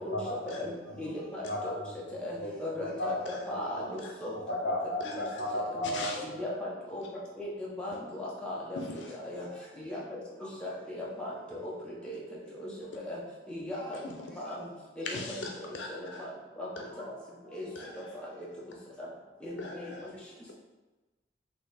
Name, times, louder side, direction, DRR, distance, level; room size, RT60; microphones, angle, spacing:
voice 1, 0.1-1.1 1.4-1.9 2.3-3.2 3.5-3.8 4.5-6.2 6.4-6.5, left 1 dB, 65° left, -2 dB, 1.0 m, -35 dB
voice 2, 1.0-1.4 2.2-4.3 5.8-5.9 6.4-7.0 7.4-8.8 9.2-9.4 9.9-10.0 10.6-11.7 12.0-12.2 12.6-12.7 13.0-13.2 13.5-14.0 14.4-14.6 15.0-15.4 15.9-16.3 16.6-16.7 17.5-17.6 19.4-19.9, left 1 dB, 5° left, -6 dB, 0.8 m, -37 dB
voice 3, 5.0-5.5 5.9-6.2 8.7-9.2 13.9-14.2 15.0-16.3 17.7-18.2 19.6-20.1, left 3 dB, 80° left, 1 dB, 0.5 m, -41 dB
4.1 x 2.9 x 4.1 m, 1.2 s
head